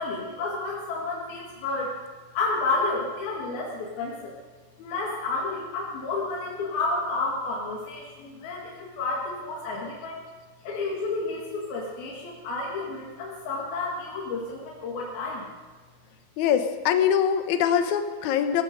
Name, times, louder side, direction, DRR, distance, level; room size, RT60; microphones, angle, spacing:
voice 1, 0.0-2.0 2.3-4.3 4.8-10.2 10.6-15.5, left 3 dB, 80° left, -3 dB, 3.9 m, -31 dB
voice 2, 16.4-18.6, left 9 dB, 65° left, 7 dB, 2.1 m, -23 dB
17.0 x 16.0 x 5.2 m, 1.4 s
omnidirectional pair, 4.2 m